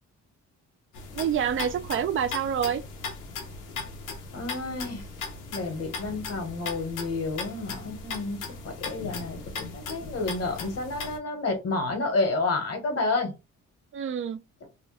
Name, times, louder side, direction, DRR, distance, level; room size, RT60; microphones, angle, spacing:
sound 1, 0.9-11.2, left 4 dB, 85° left, 0.9 m, -38 dB
voice 1, 1.1-2.8 13.9-14.4, right 8 dB, 45° right, 0.5 m, -27 dB
voice 2, 4.3-5.0 5.5-8.4 8.6-13.3, left 3 dB, 50° left, 1.3 m, -30 dB
3.0 x 2.2 x 3.2 m
cardioid pair, 90°, 30 cm